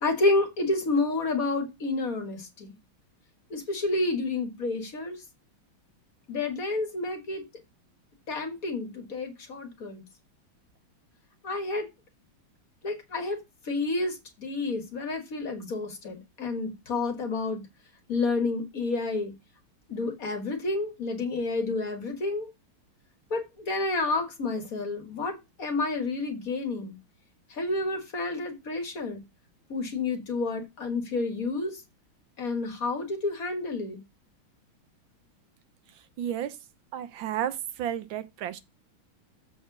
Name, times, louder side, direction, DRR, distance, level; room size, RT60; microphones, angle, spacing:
voice 1, 0.0-2.7 3.5-5.2 6.3-7.4 8.3-10.0 11.4-11.9 12.8-17.6 18.1-19.3 19.9-22.5 23.3-27.0 27.5-29.2 29.7-31.8 32.4-34.0, left 3 dB, 45° left, 1.9 m, -30 dB
voice 2, 36.2-36.6 36.9-38.6, right 10 dB, 70° right, 1.6 m, -32 dB
7.5 x 4.3 x 5.9 m
omnidirectional pair, 2.3 m